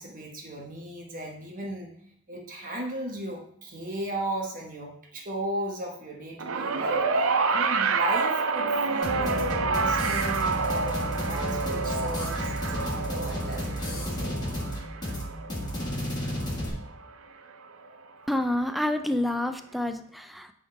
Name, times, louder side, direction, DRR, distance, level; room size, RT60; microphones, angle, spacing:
voice 1, 0.0-1.9 2.3-14.5, right 1 dB, 40° right, 0 dB, 1.1 m, -36 dB
sound 1, 6.4-16.8 17.9-18.0, right 4 dB, 70° right, 0.5 m, -28 dB
sound 2, 9.0-16.7, equal, 20° left, 1.5 m, -32 dB
voice 2, 18.3-20.5, left 1 dB, ahead, 8 dB, 0.4 m, -28 dB
8.2 x 3.7 x 4.6 m, 0.71 s
head